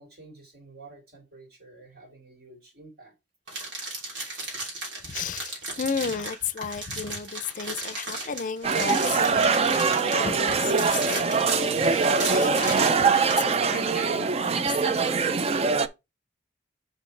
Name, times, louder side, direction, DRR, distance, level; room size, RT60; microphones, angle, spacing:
voice 1, 0.0-3.1, right 3 dB, 55° right, 2.6 m, -50 dB
sound 1, 3.5-13.5, right 2 dB, 85° right, 3.0 m, -35 dB
voice 2, 5.1-15.3, left 6 dB, 45° left, 0.5 m, -34 dB
sound 2, 8.6-15.9, right 5 dB, 35° right, 0.4 m, -23 dB
6.2 x 5.3 x 3.2 m
head